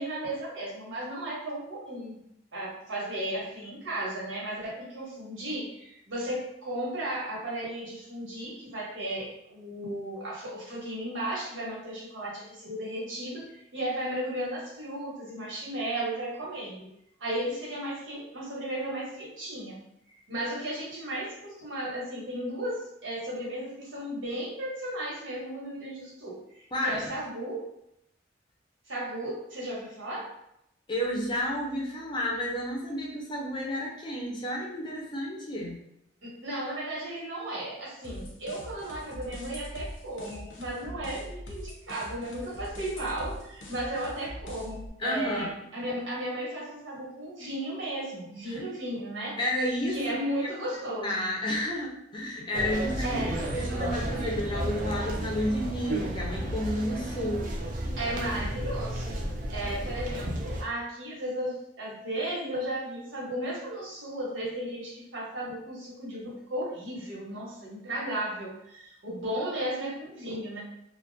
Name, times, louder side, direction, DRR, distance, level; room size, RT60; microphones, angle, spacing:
voice 1, 0.0-2.2 2.5-16.9 17.2-19.8 20.3-27.6 28.9-30.3 36.4-49.3 49.9-51.3 53.0-53.4 58.0-59.1 59.5-70.6, right 1 dB, 90° right, -5 dB, 1.0 m, -35 dB
voice 2, 26.7-27.1 30.9-35.8 45.0-45.5 48.5-48.6 49.4-50.1 50.4-50.5 51.0-53.2 53.5-57.5, left 1 dB, 25° left, -2 dB, 0.5 m, -31 dB
sound 1, 38.0-44.9, equal, 80° left, 0.5 m, -42 dB
sound 2, 52.5-60.6, right 1 dB, 45° right, 0.4 m, -32 dB
2.3 x 2.1 x 2.5 m, 0.79 s
head